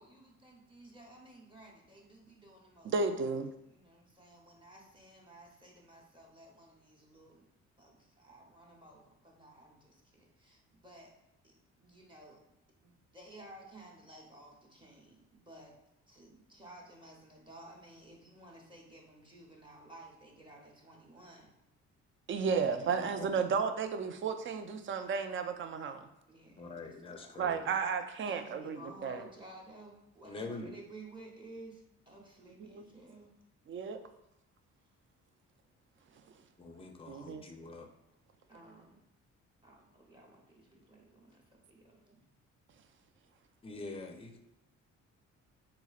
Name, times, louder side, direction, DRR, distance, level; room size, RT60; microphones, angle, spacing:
voice 1, 0.0-2.9 3.7-7.5 7.8-11.1 11.4-12.4 12.8-15.7 16.1-21.5 26.3-27.4 28.2-33.3 37.1-37.7 38.5-39.0 39.6-42.3, right 1 dB, 15° right, -1 dB, 0.9 m, -55 dB
voice 2, 2.8-3.5 22.3-26.0 27.4-29.2 32.6-32.8 33.7-34.0 37.1-37.4, right 5 dB, 40° right, 9 dB, 0.4 m, -33 dB
voice 3, 23.0-23.3 26.6-27.6 30.2-30.7 36.6-37.9 43.6-44.4, left 3 dB, 20° left, 4 dB, 0.5 m, -45 dB
3.8 x 3.0 x 2.4 m, 0.87 s
cardioid pair, 90°, 30 cm